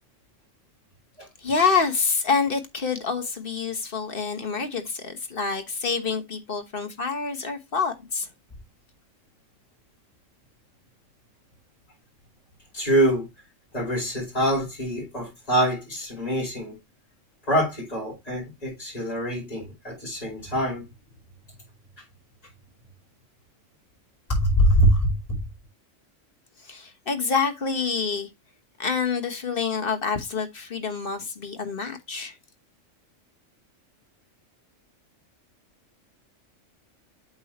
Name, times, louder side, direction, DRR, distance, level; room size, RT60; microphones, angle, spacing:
voice 1, 1.4-8.3 26.6-28.3 28.8-32.4, left 5 dB, 45° left, 1.3 m, -27 dB
voice 2, 12.7-13.3 13.7-16.8 17.5-20.8 24.3-25.4, equal, 30° left, 5.0 m, -24 dB
8.3 x 6.3 x 3.0 m
omnidirectional pair, 1.3 m